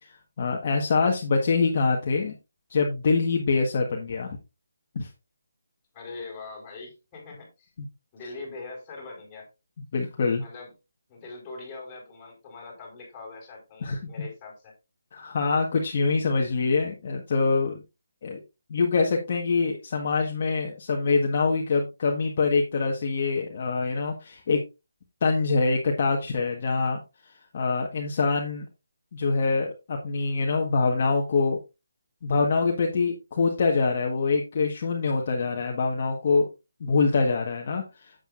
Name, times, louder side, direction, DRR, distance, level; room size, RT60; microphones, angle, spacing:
voice 1, 0.0-2.3 2.7-4.4 4.9-5.1 9.9-10.4 13.8-14.0 15.1-17.8 18.2-18.4 18.7-24.6 25.2-27.0 27.5-28.7 29.1-31.6 32.2-36.5 36.8-38.1, left 4 dB, 40° left, 0 dB, 1.5 m, -25 dB
voice 2, 5.9-7.7 8.1-9.5 10.4-10.7 11.1-14.7, left 3 dB, 15° left, -2 dB, 4.9 m, -42 dB
10.0 x 8.2 x 2.6 m, 0.26 s
hypercardioid pair, 170°, 0 cm